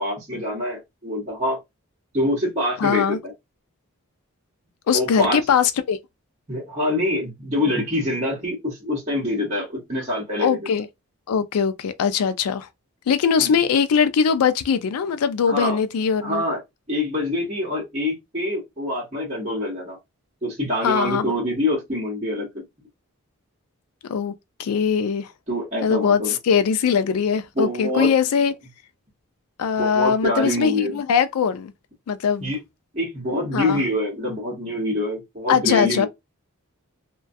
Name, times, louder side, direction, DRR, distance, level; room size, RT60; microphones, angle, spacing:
voice 1, 0.0-1.6 2.1-3.3 4.9-5.4 6.5-10.6 13.4-13.5 15.5-15.8 16.2-16.6 16.9-20.0 20.4-22.6 25.5-26.4 27.6-28.1 29.8-31.0 32.4-32.6 32.9-36.1, left 1 dB, 30° right, 1.0 m, -25 dB
voice 2, 2.8-3.2 4.9-6.0 10.4-10.9 11.3-12.7 13.1-16.4 20.8-21.3 24.1-24.3 24.6-25.3 25.8-28.5 29.6-31.7 32.1-32.5 33.5-33.8 35.5-36.1, left 6 dB, 80° left, 0.4 m, -21 dB
2.2 x 2.2 x 2.5 m
head